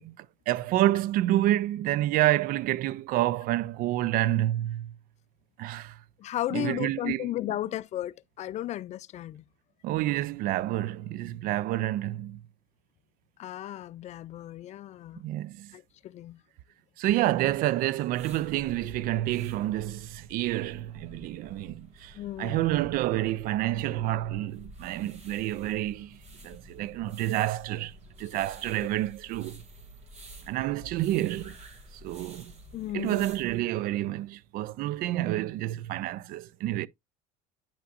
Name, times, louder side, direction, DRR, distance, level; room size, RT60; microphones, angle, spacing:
voice 1, 0.0-4.9 5.6-6.0 6.5-7.3 9.8-12.4 15.2-15.7 17.0-26.2 26.4-29.6 30.5-31.6 31.9-32.5 32.9-36.9, right 14 dB, 55° right, 0.4 m, -29 dB
voice 2, 6.2-9.4 13.4-15.2 15.7-16.4 22.1-22.6 32.7-33.3, left 13 dB, 40° left, 0.4 m, -34 dB
sound 1, 18.1-33.6, right 1 dB, 40° right, 2.4 m, -50 dB
10.0 x 5.7 x 2.4 m
supercardioid pair, 100°, 18 cm